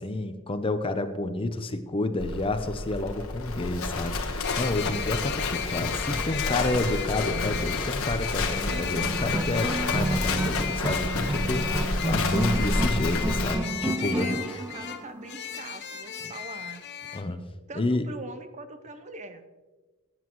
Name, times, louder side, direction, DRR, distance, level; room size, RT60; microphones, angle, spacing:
voice 1, 0.0-14.6 16.2-16.3 17.1-17.4 17.7-18.1, left 2 dB, 25° left, 9 dB, 0.6 m, -30 dB
Livestock farm animals working animals, 2.2-13.5, left 3 dB, 65° left, 1.2 m, -30 dB
sound 1, 4.4-17.2, left 9 dB, 50° left, 0.8 m, -35 dB
voice 2, 8.7-9.3 14.0-16.9 17.7-19.4, right 2 dB, 30° right, 9 dB, 0.7 m, -42 dB
sound 2, 9.0-15.6, right 2 dB, 15° right, 0.3 m, -31 dB
16.0 x 9.3 x 3.1 m, 1.3 s
head